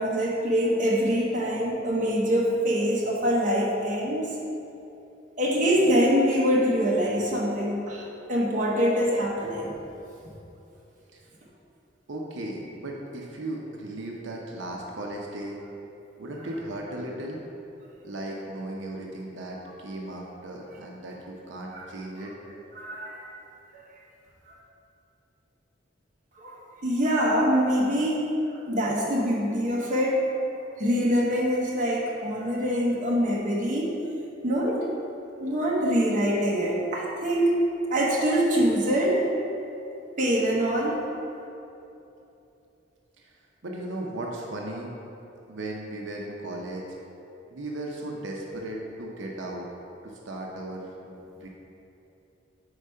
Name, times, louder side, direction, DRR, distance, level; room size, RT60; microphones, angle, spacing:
voice 1, 0.0-4.3 5.4-9.7 21.7-21.8 22.7-23.3 23.7-23.8 26.4-28.2 28.7-30.2 30.8-33.9 34.4-34.9 35.4-37.5 37.9-39.2 40.2-41.0, equal, 45° right, -4 dB, 1.0 m, -24 dB
voice 2, 12.1-15.6 16.2-17.4 18.0-22.3 43.2-43.3 43.6-44.9 45.5-46.9 47.5-49.7 50.0-51.5, right 1 dB, 90° right, -1 dB, 0.7 m, -36 dB
4.9 x 4.5 x 5.5 m, 2.9 s
head